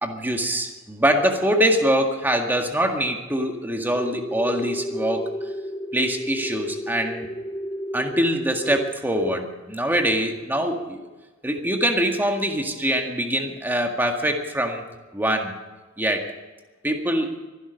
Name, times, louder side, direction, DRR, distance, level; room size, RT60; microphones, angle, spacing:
voice 1, 0.0-5.3 5.9-7.3 7.9-11.0 11.4-14.8 15.1-15.5 16.0-16.3 16.8-17.3, equal, 10° right, 3 dB, 1.8 m, -23 dB
sound 1, 3.9-8.9, equal, 15° left, 0.7 m, -32 dB
24.0 x 11.5 x 5.2 m, 1.3 s
head